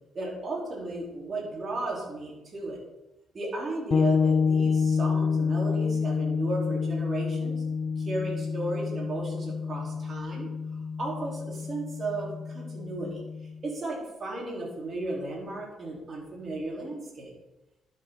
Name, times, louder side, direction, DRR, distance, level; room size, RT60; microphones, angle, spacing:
voice 1, 0.1-2.8 3.3-7.6 8.0-10.5 11.0-17.3, right 2 dB, 45° right, -3 dB, 3.7 m, -35 dB
sound 1, 3.9-13.6, left 5 dB, 45° left, 0.4 m, -28 dB
12.0 x 7.8 x 3.9 m, 0.97 s
cardioid pair, 90°, 0 cm